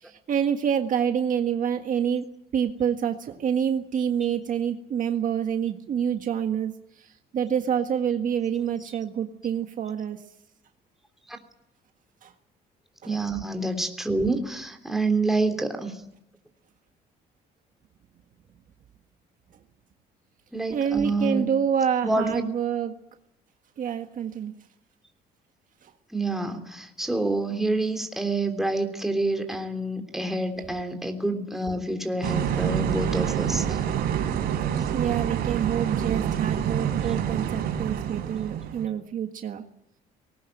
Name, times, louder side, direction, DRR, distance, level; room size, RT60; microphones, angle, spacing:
voice 1, 0.0-2.2 2.5-6.7 7.0-10.2 12.2-12.3 13.0-13.2 20.7-22.9 23.8-24.5 25.8-25.9 30.6-30.7 34.9-39.6, right 8 dB, 50° right, 6 dB, 1.6 m, -27 dB
voice 2, 13.0-16.0 20.5-21.5 22.0-22.4 26.1-33.8, right 2 dB, ahead, 4 dB, 3.3 m, -27 dB
sound 1, 32.2-38.9, right 9 dB, 70° right, 4.5 m, -27 dB
19.5 x 18.5 x 9.2 m, 0.84 s
cardioid pair, 110°, 17 cm